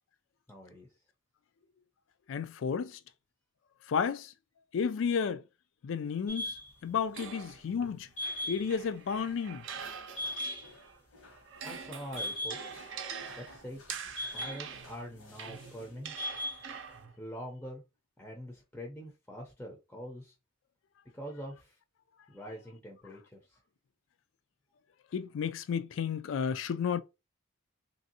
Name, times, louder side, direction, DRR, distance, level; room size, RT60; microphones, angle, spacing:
voice 1, 0.5-0.9 11.6-12.8 13.4-16.1 17.2-17.8 18.2-20.3 21.1-21.7 22.3-23.6, equal, 10° left, 0.5 m, -44 dB
voice 2, 2.3-3.0 3.9-4.3 4.7-5.4 5.8-6.5 6.8-8.1 8.5-9.6 25.1-27.0, left 6 dB, 60° left, 0.3 m, -32 dB
sound 1, 6.3-6.7 8.2-8.9 9.2-9.3 9.8-9.9 10.2-10.8 11.1-11.8 12.1-12.9 13.2-15.0 15.2-15.7 16.2-16.7, left 1 dB, 80° left, 1.2 m, -39 dB
sound 2, 7.1-11.0 11.3-17.2, right 6 dB, 60° right, 0.6 m, -44 dB
3.2 x 2.6 x 2.7 m
head